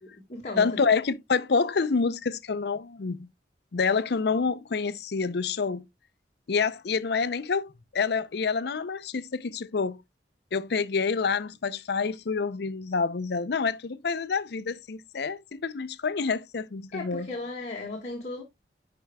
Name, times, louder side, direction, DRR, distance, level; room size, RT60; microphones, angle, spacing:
voice 1, 0.0-0.7 16.9-18.4, left 2 dB, 40° left, 1.6 m, -36 dB
voice 2, 0.6-3.3 3.7-5.9 6.5-10.0 10.5-17.3, left 5 dB, 65° left, 0.5 m, -27 dB
10.5 x 4.5 x 2.2 m
head